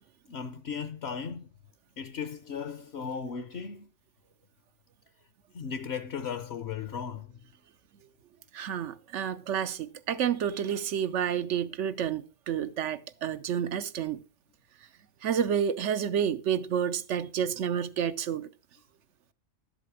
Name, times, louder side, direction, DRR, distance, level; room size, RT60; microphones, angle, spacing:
voice 1, 0.3-1.5 2.0-3.9 5.5-7.4, left 6 dB, 65° left, 1.0 m, -36 dB
voice 2, 8.5-14.2 15.2-18.5, right 8 dB, 90° right, 1.1 m, -30 dB
11.5 x 7.7 x 4.8 m
omnidirectional pair, 1.2 m